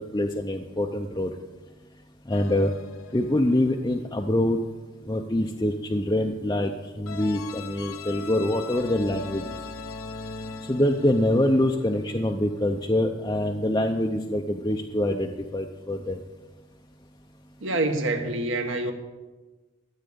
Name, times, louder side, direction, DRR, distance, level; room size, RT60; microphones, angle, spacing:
voice 1, 0.0-1.3 2.3-2.7 3.1-4.6 5.1-6.7 7.0-9.5 10.7-16.2, left 1 dB, 15° left, 0.5 m, -25 dB
sound 1, 2.3-4.4 7.1-12.5, left 4 dB, 75° left, 0.7 m, -40 dB
voice 2, 17.6-18.9, right 2 dB, 65° right, 1.5 m, -26 dB
14.0 x 8.2 x 6.8 m
head